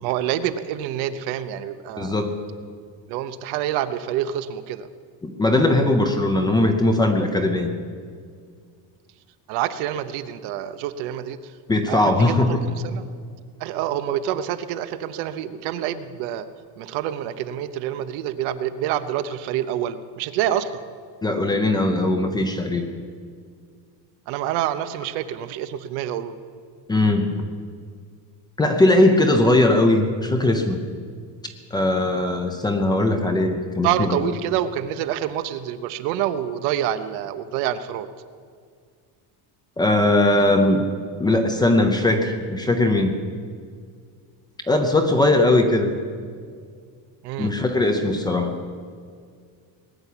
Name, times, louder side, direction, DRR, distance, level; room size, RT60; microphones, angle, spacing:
voice 1, 0.0-2.1 3.1-4.9 9.5-11.5 11.9-12.4 12.6-13.1 13.6-16.4 16.8-20.9 24.3-26.4 33.8-38.1 47.2-47.5, right 11 dB, 65° right, 11 dB, 0.9 m, -27 dB
voice 2, 2.0-2.3 5.2-7.7 11.7-12.6 21.2-22.9 26.9-27.3 28.6-30.8 31.7-34.2 39.8-40.8 41.2-43.1 44.7-45.9 47.4-48.5, left 2 dB, 10° left, 5 dB, 0.6 m, -19 dB
19.5 x 7.1 x 9.9 m, 2.1 s
cardioid pair, 180°, 43 cm